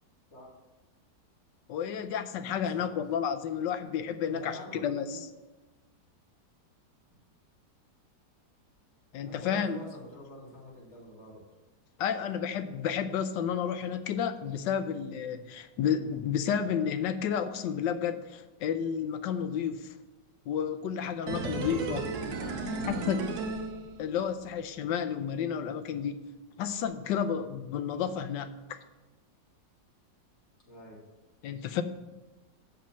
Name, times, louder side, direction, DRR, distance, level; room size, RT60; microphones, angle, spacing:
voice 1, 1.7-5.2 9.1-9.8 12.0-19.9 20.5-22.1 22.9-23.2 24.0-26.1 26.6-28.8 31.4-31.8, left 8 dB, 90° left, 9 dB, 1.3 m, -31 dB
voice 2, 2.7-3.2 4.2-5.2 9.2-11.4 22.3-23.4 27.9-28.2 30.7-31.0, left 1 dB, 40° left, -4 dB, 2.6 m, -46 dB
sound 1, 21.3-24.4 24.7-24.8, right 3 dB, 65° right, 1.4 m, -35 dB
6.8 x 5.3 x 7.2 m, 1.1 s
omnidirectional pair, 1.9 m